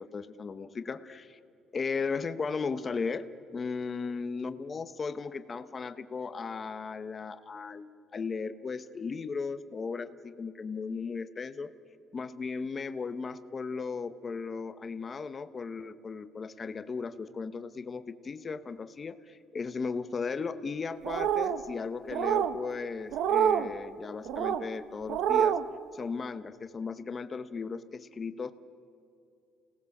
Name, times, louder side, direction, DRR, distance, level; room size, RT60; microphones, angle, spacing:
voice 1, 0.0-1.4 1.7-3.3 3.5-11.7 12.1-25.6 25.9-28.5, left 5 dB, 25° left, 11 dB, 0.9 m, -36 dB
sound 1, 21.0-21.6 22.1-22.5 23.1-23.7 24.3-24.6 25.1-25.6, right 9 dB, 70° right, 1.0 m, -26 dB
29.5 x 18.5 x 7.2 m, 2.5 s
cardioid pair, 165°, 0 cm